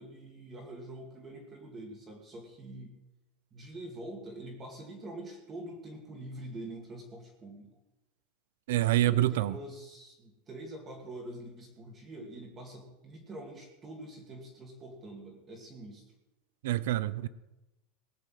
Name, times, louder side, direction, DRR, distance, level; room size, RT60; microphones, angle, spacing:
voice 1, 0.0-2.9 3.5-7.7 9.0-16.1, right 1 dB, 20° right, 1 dB, 2.1 m, -45 dB
voice 2, 8.7-9.5 16.6-17.3, right 14 dB, 75° right, 17 dB, 0.6 m, -26 dB
19.0 x 6.4 x 7.7 m, 0.98 s
supercardioid pair, 180°, 0 cm